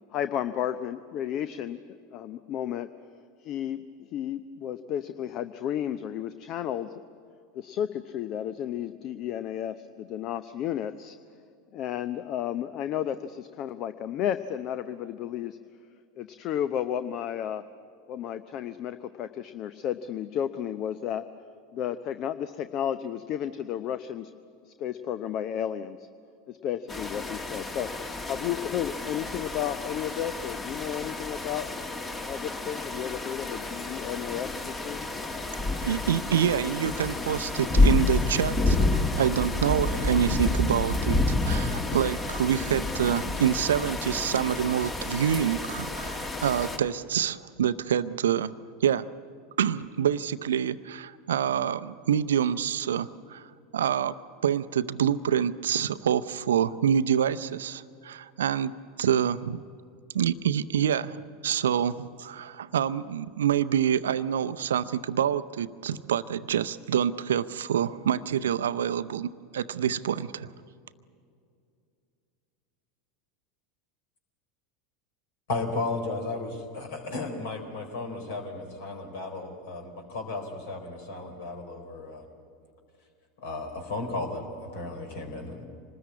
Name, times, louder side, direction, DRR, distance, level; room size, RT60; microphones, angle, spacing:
voice 1, 0.1-2.9 3.4-7.0 7.5-11.2 11.7-15.6 16.2-17.6 18.1-21.2 21.7-24.3 24.6-26.1 26.5-27.9 28.3-31.7 32.3-35.1, left 10 dB, 40° left, 12 dB, 0.7 m, -32 dB
sound 1, 26.9-46.8, left 2 dB, 20° left, 2.0 m, -29 dB
voice 2, 35.8-48.5 48.8-49.1 49.6-53.4 53.7-54.2 54.4-59.6 60.1-70.5, right 9 dB, 65° right, 14 dB, 0.7 m, -27 dB
voice 3, 75.5-82.2 83.4-85.7, left 3 dB, 60° left, 4 dB, 4.1 m, -34 dB
26.0 x 20.0 x 8.6 m, 2.4 s
figure-of-eight pair, 80°, 0 cm